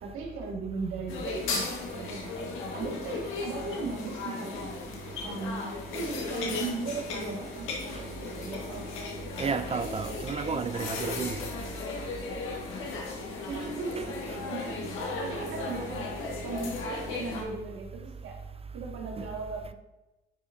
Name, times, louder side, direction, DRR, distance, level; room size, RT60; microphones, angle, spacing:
voice 1, 0.0-2.3 2.7-4.7 5.2-8.9 13.5-14.9 15.2-16.1 16.4-18.4 18.7-19.7, right 3 dB, 90° right, 1.9 m, -37 dB
sound 1, 1.1-17.4, left 3 dB, 90° left, 1.6 m, -36 dB
voice 2, 9.4-11.4 19.2-19.3, right 6 dB, 30° right, 0.4 m, -32 dB
9.8 x 5.7 x 2.7 m
cardioid pair, 90°, 20 cm